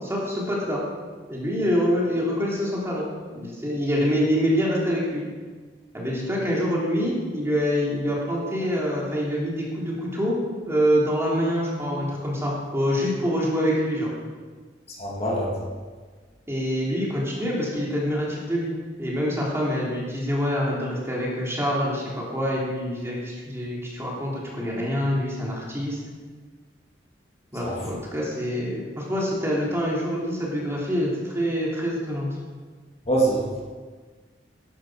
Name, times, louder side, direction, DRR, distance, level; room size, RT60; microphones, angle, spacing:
voice 1, 0.0-0.8 1.3-5.2 5.9-10.3 10.6-14.1 16.5-18.7 19.0-26.0 27.5-32.3, equal, 15° right, -4 dB, 3.1 m, -25 dB
voice 2, 15.0-15.5 27.6-27.7 33.1-33.6, right 2 dB, 35° left, -3 dB, 2.4 m, -24 dB
12.0 x 11.5 x 5.0 m, 1.5 s
head